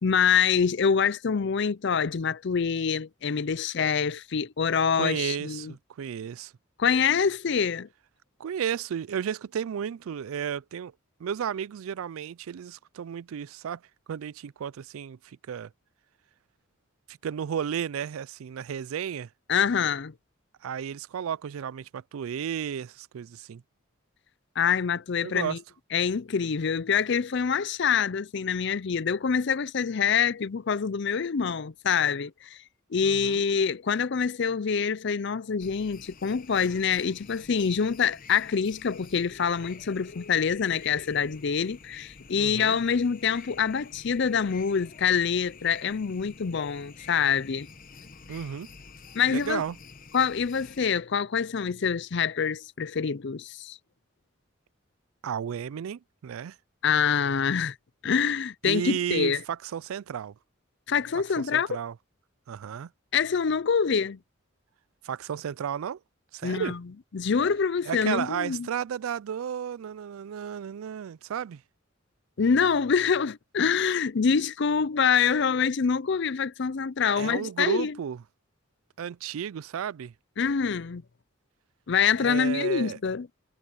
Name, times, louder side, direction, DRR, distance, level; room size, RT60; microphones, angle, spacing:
voice 1, 0.0-5.7 6.8-7.9 19.5-20.1 24.6-25.6 25.9-32.6 32.9-47.7 49.1-49.6 50.1-53.8 56.8-57.8 58.0-59.4 60.9-61.8 63.1-64.2 66.4-66.8 67.1-68.7 72.4-78.0 80.4-81.0 81.9-83.3, left 6 dB, 60° left, 0.5 m, -25 dB
voice 2, 4.9-6.5 8.4-10.9 11.2-13.8 14.1-15.7 17.2-19.3 20.6-23.6 25.2-25.6 33.0-33.4 42.4-42.8 48.3-48.7 49.3-49.8 55.2-56.5 58.6-60.3 61.4-61.9 62.5-62.9 65.0-66.0 66.3-66.8 67.9-71.6 77.2-78.2 79.0-80.1 82.2-83.0, right 8 dB, 90° right, 0.4 m, -33 dB
sound 1, 35.6-50.8, left 5 dB, 40° left, 1.0 m, -48 dB
head